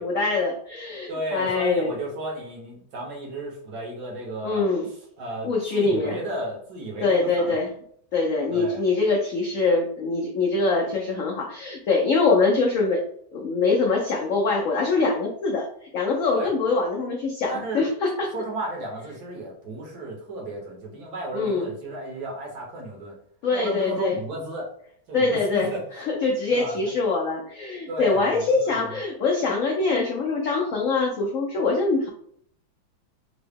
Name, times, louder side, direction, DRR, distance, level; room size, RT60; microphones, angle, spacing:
voice 1, 0.0-1.9 4.4-4.9 5.4-6.2 7.0-7.7 8.1-13.0 13.3-15.7 15.9-18.3 21.3-21.7 23.4-24.2 25.1-32.1, left 3 dB, 85° left, -1 dB, 0.7 m, -23 dB
voice 2, 1.1-4.6 5.2-7.6 8.5-8.8 16.3-16.5 17.5-17.9 18.3-23.2 23.5-24.7 25.1-25.8 26.5-26.8 27.9-29.0, right 1 dB, 60° right, -1 dB, 1.4 m, -33 dB
3.8 x 2.0 x 3.4 m, 0.65 s
omnidirectional pair, 2.1 m